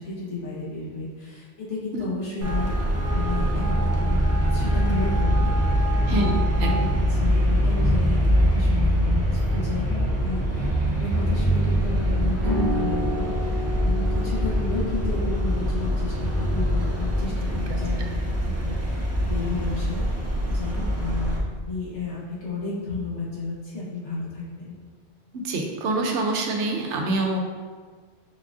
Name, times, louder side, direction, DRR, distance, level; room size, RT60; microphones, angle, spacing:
voice 1, 0.0-2.7 3.1-10.7 11.0-17.9 18.6-20.0 20.5-21.3 21.6-24.7, left 3 dB, 80° left, -7 dB, 1.5 m, -32 dB
Traffic noise roadway noise, 2.4-21.4, equal, 20° right, 0.4 m, -23 dB
sound 1, 12.4-19.6, left 2 dB, 50° left, 1.5 m, -35 dB
voice 2, 25.4-27.4, right 2 dB, 85° right, 2 dB, 0.9 m, -25 dB
4.6 x 2.5 x 3.5 m, 1.5 s
omnidirectional pair, 1.2 m